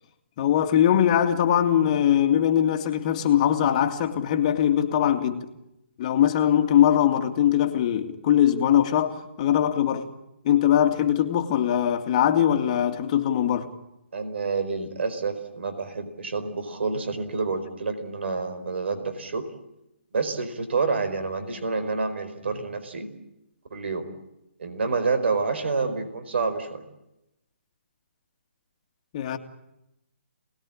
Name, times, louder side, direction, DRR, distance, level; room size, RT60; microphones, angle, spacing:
voice 1, 0.4-5.5 6.0-10.1 10.4-13.7 29.1-29.4, left 10 dB, 35° left, 2.3 m, -21 dB
voice 2, 14.1-19.5 20.1-23.1 23.7-24.1 24.6-26.8, right 4 dB, 65° right, 4.6 m, -28 dB
28.0 x 20.0 x 8.7 m
hypercardioid pair, 150°, 7 cm